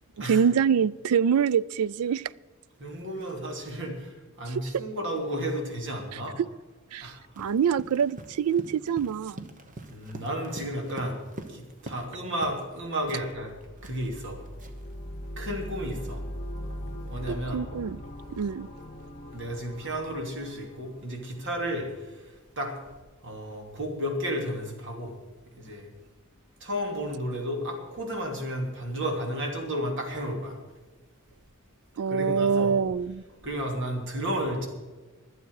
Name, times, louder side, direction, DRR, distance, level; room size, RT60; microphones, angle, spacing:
voice 1, 0.3-2.2 6.9-7.1 7.4-9.5 17.3-18.0 18.3-18.7 32.0-33.2, right 7 dB, 85° right, 21 dB, 0.4 m, -25 dB
voice 2, 2.8-6.3 7.0-7.2 9.9-11.2 11.5-13.5 13.8-14.4 15.4-16.2 17.1-17.6 19.3-22.2 22.6-22.7 23.2-25.1 25.6-25.9 26.6-30.6 32.1-32.7 33.4-34.7, equal, 60° right, 2 dB, 2.8 m, -32 dB
Run, 7.3-12.1 12.4-12.7 13.1-14.9, right 1 dB, 40° right, 1.3 m, -44 dB
sound 1, 13.3-21.9, equal, 35° left, 1.2 m, -40 dB
24.0 x 8.1 x 4.8 m, 1.3 s
head